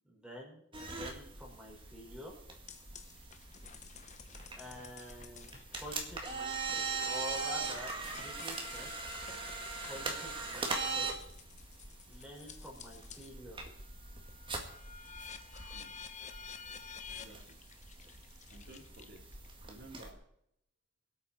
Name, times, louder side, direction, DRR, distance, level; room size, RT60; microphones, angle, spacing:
voice 1, 0.0-0.6 0.9-2.3 4.6-5.5 5.8-8.9 9.8-11.3 12.0-13.6, left 1 dB, 5° right, -2 dB, 4.9 m, -48 dB
sound 1, 0.7-20.1, right 4 dB, 25° right, 2.1 m, -42 dB
sound 2, 2.7-13.4 13.8-19.5, left 6 dB, 40° left, 1.0 m, -52 dB
voice 2, 17.1-17.6 18.3-20.2, right 2 dB, 60° right, -4 dB, 2.9 m, -55 dB
23.0 x 8.7 x 4.3 m, 0.73 s
head